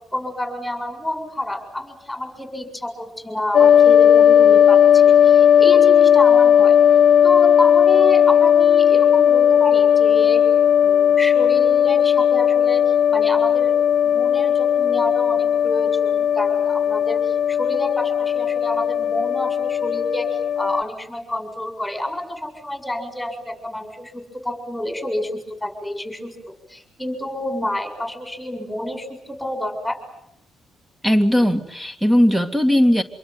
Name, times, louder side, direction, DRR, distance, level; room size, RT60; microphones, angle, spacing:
voice 1, 0.1-6.8 7.2-10.4 10.8-12.8 13.1-13.8 14.0-26.4 26.7-30.0, left 1 dB, 5° left, 6 dB, 7.2 m, -29 dB
sound 1, 3.5-20.8, left 9 dB, 65° left, 1.0 m, -15 dB
voice 2, 31.0-33.0, equal, 10° right, 7 dB, 2.3 m, -17 dB
26.5 x 23.5 x 9.3 m, 0.78 s
cardioid pair, 90°, 0 cm